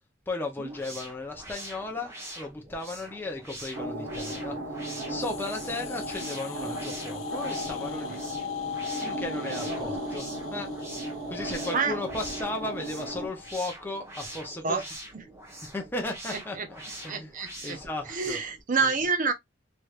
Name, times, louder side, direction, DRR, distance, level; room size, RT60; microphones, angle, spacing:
voice 1, 0.3-4.6 5.1-8.2 8.9-10.7 11.3-14.8 15.7-17.3 17.6-18.4 18.8-18.9, left 2 dB, 10° left, 0.6 m, -35 dB
sound 1, 0.6-18.6, right 1 dB, 15° right, 1.1 m, -44 dB
sound 2, 3.7-13.3, right 1 dB, 65° right, 1.3 m, -36 dB
sound 3, 5.2-13.5, left 8 dB, 75° left, 0.6 m, -40 dB
voice 2, 16.3-16.7 17.1-17.8 18.1-19.3, right 4 dB, 40° right, 0.5 m, -28 dB
3.1 x 3.1 x 2.3 m
head